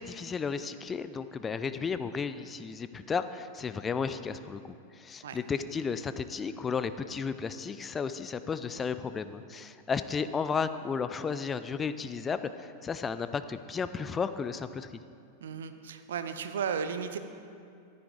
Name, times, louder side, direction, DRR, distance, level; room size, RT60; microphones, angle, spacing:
voice 1, 0.0-14.9, left 5 dB, 20° left, 12 dB, 0.4 m, -33 dB
voice 2, 15.4-17.2, right 7 dB, 60° right, 9 dB, 0.7 m, -34 dB
14.5 x 10.5 x 3.8 m, 2.5 s
figure-of-eight pair, 90°, 0 cm